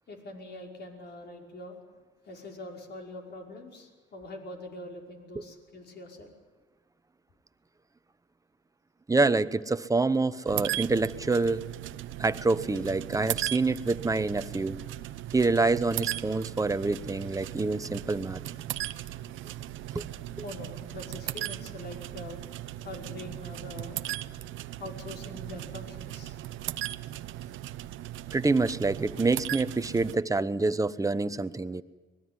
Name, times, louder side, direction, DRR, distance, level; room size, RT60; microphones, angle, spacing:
voice 1, 0.1-1.8 2.2-6.3 18.6-18.7 20.4-22.4 22.8-24.0 24.8-26.4, left 1 dB, 60° left, 1 dB, 5.4 m, -43 dB
voice 2, 9.1-11.7 12.2-14.8 15.3-18.4 19.9-20.0 28.3-31.8, right 3 dB, 15° right, 13 dB, 1.0 m, -26 dB
sound 1, 10.5-30.2, right 14 dB, 85° right, 0.8 m, -37 dB
24.5 x 20.0 x 9.7 m, 1.3 s
cardioid pair, 90°, 20 cm